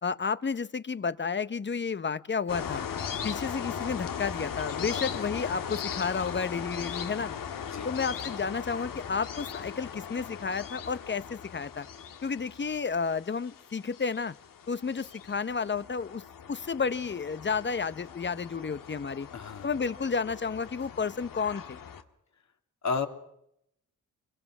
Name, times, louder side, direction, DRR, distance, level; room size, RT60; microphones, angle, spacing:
voice 1, 0.0-2.9 3.2-7.3 7.8-11.9 12.2-14.3 14.7-16.2 16.5-19.3 19.6-21.8, left 5 dB, 35° left, 15 dB, 0.9 m, -31 dB
sound 1, 2.5-22.0, left 7 dB, 80° left, 1.8 m, -39 dB
voice 2, 4.9-5.2 7.6-7.9 19.3-19.7 22.8-23.1, left 5 dB, 55° left, 5 dB, 2.9 m, -33 dB
26.5 x 23.5 x 6.1 m, 0.77 s
cardioid pair, 70°, 33 cm